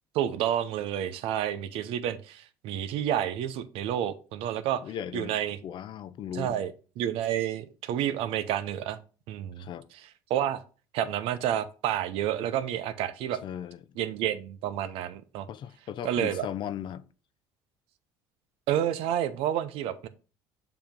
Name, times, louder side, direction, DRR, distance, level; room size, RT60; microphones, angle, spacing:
voice 1, 0.1-4.8 5.1-5.6 6.3-9.0 9.3-10.6 10.9-13.4 14.0-15.5 16.0-16.5 18.7-20.1, right 11 dB, 70° right, 0.6 m, -30 dB
voice 2, 4.8-5.4 5.6-6.6 9.6-9.9 13.4-13.8 15.5-17.0, left 9 dB, 50° left, 0.5 m, -37 dB
6.9 x 2.9 x 5.1 m
supercardioid pair, 80°, 10 cm